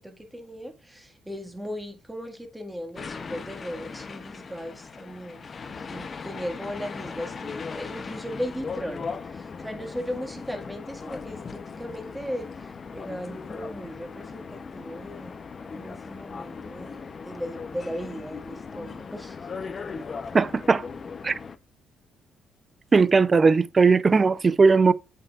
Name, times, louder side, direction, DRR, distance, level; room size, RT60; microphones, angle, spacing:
voice 1, 0.0-19.4, equal, 5° right, 1.8 m, -37 dB
sound 1, 3.0-21.6, left 5 dB, 40° left, 0.8 m, -38 dB
voice 2, 20.3-20.8 21.2-21.4 22.9-24.9, right 4 dB, 30° right, 0.5 m, -18 dB
8.2 x 5.6 x 2.4 m
cardioid pair, 90°, 0 cm